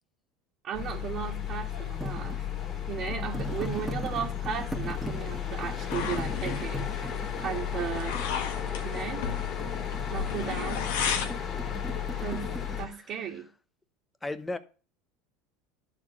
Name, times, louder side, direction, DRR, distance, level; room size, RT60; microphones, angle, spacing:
voice 1, 0.6-2.5 2.9-8.2 8.7-9.3 10.1-10.9 12.1-13.5, right 8 dB, 45° right, 1.8 m, -36 dB
sound 1, 0.7-12.9, left 9 dB, 45° left, 2.2 m, -34 dB
sound 2, 2.0-12.8, right 1 dB, 10° right, 1.9 m, -39 dB
sound 3, 5.9-11.4, left 7 dB, 75° left, 1.4 m, -35 dB
voice 2, 12.6-13.4 14.2-14.6, left 2 dB, 15° left, 1.0 m, -38 dB
12.5 x 4.4 x 5.9 m
hypercardioid pair, 85°, 0 cm